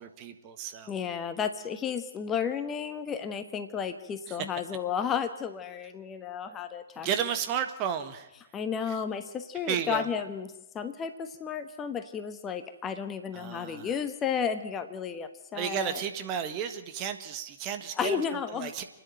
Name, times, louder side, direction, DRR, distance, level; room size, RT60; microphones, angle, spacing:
voice 1, 0.0-0.9 4.3-4.4 6.4-6.6 7.0-8.3 8.9-9.0 9.7-10.1 13.3-13.9 15.5-18.2 18.5-18.8, right 8 dB, 30° right, 8 dB, 1.5 m, -33 dB
voice 2, 0.9-7.1 8.5-10.5 10.7-16.0 18.0-18.7, left 7 dB, 15° left, 8 dB, 1.2 m, -33 dB
29.0 x 10.5 x 9.2 m, 0.95 s
figure-of-eight pair, 125°, 0 cm